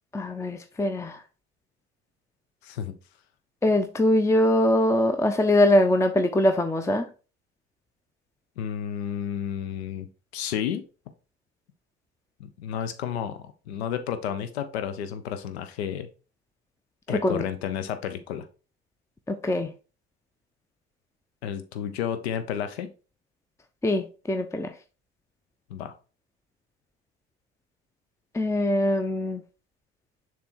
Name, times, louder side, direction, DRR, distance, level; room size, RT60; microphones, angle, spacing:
voice 1, 0.1-1.2 3.6-7.1 17.1-17.4 19.3-19.7 23.8-24.7 28.3-29.4, left 1 dB, 10° left, 0.6 m, -22 dB
voice 2, 2.6-2.9 8.6-10.8 12.4-16.1 17.1-18.4 21.4-22.9 25.7-25.9, left 9 dB, 75° left, 0.8 m, -31 dB
6.8 x 3.3 x 4.6 m
hypercardioid pair, 60°, 32 cm